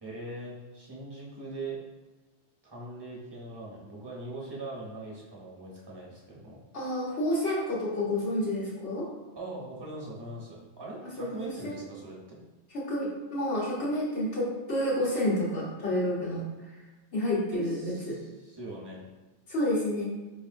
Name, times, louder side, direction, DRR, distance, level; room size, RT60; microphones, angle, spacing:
voice 1, 0.0-1.8 2.6-6.6 9.4-12.4 17.5-19.0, right 2 dB, 25° right, -5 dB, 0.9 m, -41 dB
voice 2, 6.7-9.1 11.0-11.8 12.7-16.4 17.1-18.2 19.5-20.0, left 1 dB, 90° left, -6 dB, 1.4 m, -29 dB
4.6 x 2.9 x 2.5 m, 1.2 s
omnidirectional pair, 1.1 m